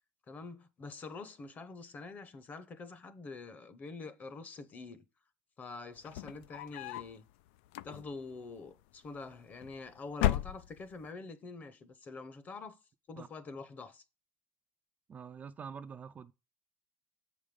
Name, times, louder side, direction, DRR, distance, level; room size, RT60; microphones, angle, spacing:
voice 1, 0.3-5.0 5.6-7.2 7.8-12.8 13.1-14.0, left 3 dB, 30° left, 0.8 m, -46 dB
sound 1, 6.0-7.2 7.7-8.3 9.3-9.8 10.1-11.1, left 13 dB, 85° left, 0.3 m, -34 dB
voice 2, 15.1-16.3, right 6 dB, 25° right, 0.3 m, -46 dB
7.4 x 5.0 x 5.3 m
cardioid pair, 140°, 6 cm